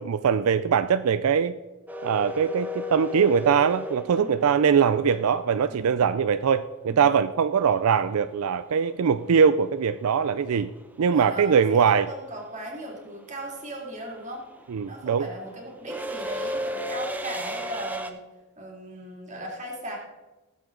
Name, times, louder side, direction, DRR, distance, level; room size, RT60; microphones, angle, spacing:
voice 1, 0.0-1.6 2.0-10.7 11.0-12.1 14.7-15.3, right 6 dB, 80° right, 12 dB, 0.4 m, -22 dB
sound 1, 1.9-5.9 8.4-8.5 9.7-10.1 10.3-18.1, left 1 dB, 10° right, 0.7 m, -35 dB
voice 2, 4.1-4.5 5.7-6.0 6.9-7.2 11.1-14.4 14.9-18.2 18.6-20.0, right 1 dB, 30° right, -1 dB, 2.8 m, -38 dB
17.0 x 7.9 x 3.9 m, 1.2 s
head